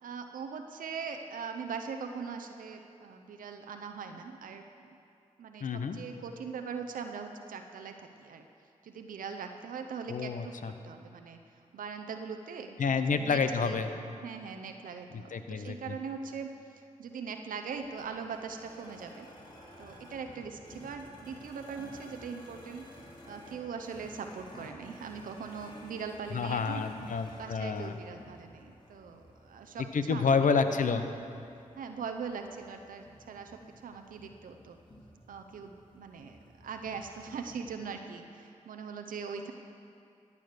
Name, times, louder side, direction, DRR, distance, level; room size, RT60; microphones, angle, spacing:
voice 1, 0.0-5.0 5.4-8.5 8.8-11.4 11.7-13.8 14.2-19.3 19.8-26.8 27.3-30.3 31.8-34.8 35.3-39.5, right 5 dB, 90° right, 5 dB, 0.6 m, -41 dB
voice 2, 5.6-6.0 10.1-10.7 12.8-13.9 15.3-15.8 26.3-28.0 29.9-31.1, left 5 dB, 75° left, 9 dB, 0.8 m, -29 dB
sound 1, 17.7-37.5, left 1 dB, 35° left, 3.1 m, -53 dB
13.5 x 8.4 x 6.6 m, 2.6 s
cardioid pair, 40°, 14 cm